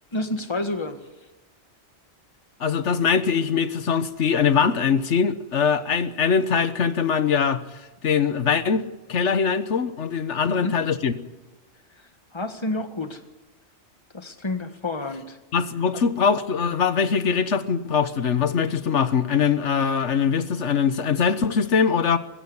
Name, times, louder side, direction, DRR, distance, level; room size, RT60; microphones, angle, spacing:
voice 1, 0.1-1.0 10.5-10.8 12.3-13.2 14.1-15.4 15.9-16.0, left 2 dB, 25° left, 8 dB, 1.7 m, -29 dB
voice 2, 2.6-7.6 8.0-8.8 9.1-11.1 15.5-22.2, left 6 dB, 85° left, 11 dB, 1.4 m, -22 dB
21.5 x 15.5 x 9.6 m, 1.1 s
omnidirectional pair, 1.2 m